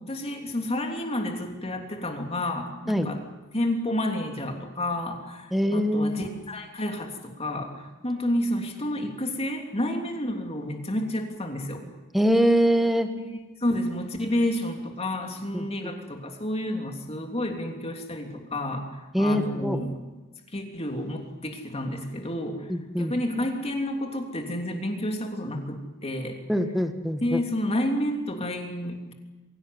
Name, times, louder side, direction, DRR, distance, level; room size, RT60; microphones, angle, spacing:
voice 1, 0.0-3.2 3.5-11.8 13.2-19.9 20.5-22.7 23.0-26.4 27.2-29.1, left 1 dB, 30° left, 3 dB, 3.1 m, -30 dB
voice 2, 5.5-6.3 12.1-13.1 15.5-15.7 19.1-19.8 22.7-23.1 26.5-27.4, equal, ahead, 6 dB, 1.7 m, -23 dB
23.5 x 17.0 x 9.6 m, 1.2 s
head